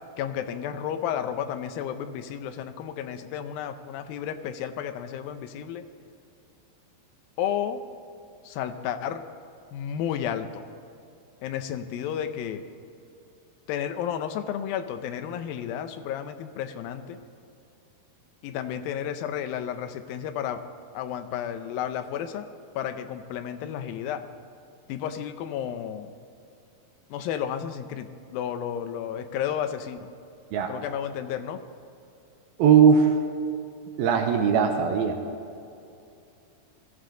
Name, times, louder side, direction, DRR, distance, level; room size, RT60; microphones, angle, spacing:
voice 1, 0.2-5.8 7.4-7.8 8.4-9.2 9.7-10.6 11.4-12.6 13.7-17.2 18.4-20.6 20.9-22.5 22.8-24.2 24.9-26.1 27.1-30.1 30.7-31.6, left 9 dB, 75° left, 8 dB, 2.3 m, -32 dB
voice 2, 32.6-33.1 34.0-35.2, right 7 dB, 75° right, 4 dB, 2.6 m, -19 dB
20.0 x 14.0 x 3.9 m, 2.6 s
omnidirectional pair, 4.6 m